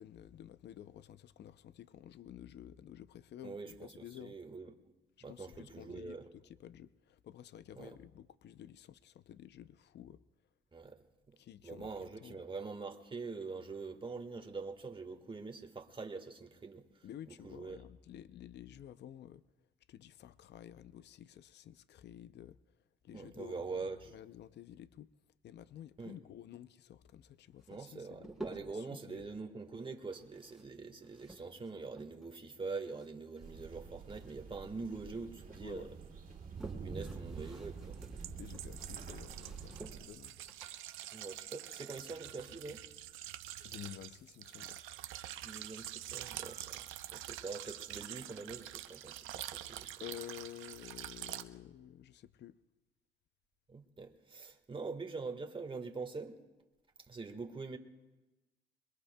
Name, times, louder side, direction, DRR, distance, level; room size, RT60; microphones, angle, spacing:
voice 1, 0.0-4.4 5.3-10.2 11.4-12.4 17.0-19.4 19.9-22.6 23.0-25.1 25.4-28.3 28.7-29.3 35.6-35.9 38.4-40.4 43.6-44.8 50.0-52.6, left 11 dB, 60° left, 0.5 m, -51 dB
voice 2, 3.4-3.9 4.2-4.7 5.2-6.2 7.7-7.9 10.7-11.4 11.6-17.0 17.4-17.8 23.1-24.1 26.0-26.2 27.7-35.9 36.8-38.0 41.1-42.8 45.4-49.9 53.7-56.4 57.1-57.8, right 4 dB, 25° right, 1.5 m, -44 dB
sound 1, 27.6-28.9 30.0-32.4 32.6-34.5 34.8-35.6 36.2-42.2, right 2 dB, ahead, 3.2 m, -53 dB
sound 2, 33.4-40.1, right 5 dB, 40° right, 2.3 m, -47 dB
sound 3, 36.0-36.1 37.4-51.4, right 13 dB, 90° right, 0.6 m, -46 dB
27.0 x 22.0 x 2.2 m
cardioid pair, 90°, 20 cm